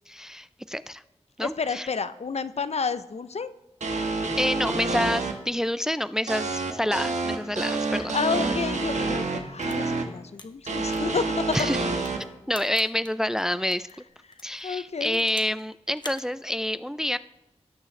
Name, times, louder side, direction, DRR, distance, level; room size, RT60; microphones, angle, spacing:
voice 1, 0.1-1.0 1.4-1.9 4.4-8.2 11.5-11.8 12.5-13.9 14.4-17.2, left 1 dB, 5° right, 15 dB, 0.3 m, -28 dB
voice 2, 1.4-3.5 7.7-11.6 14.6-15.2, left 5 dB, 65° left, 13 dB, 0.5 m, -30 dB
sound 1, 3.8-5.3 6.3-10.0 10.7-12.2, right 3 dB, 90° right, 1.2 m, -28 dB
sound 2, 9.6-13.9 14.3-15.6 15.9-16.2, left 2 dB, 40° left, 1.0 m, -45 dB
18.0 x 6.3 x 3.2 m, 0.98 s
wide cardioid pair, 60°, 12 cm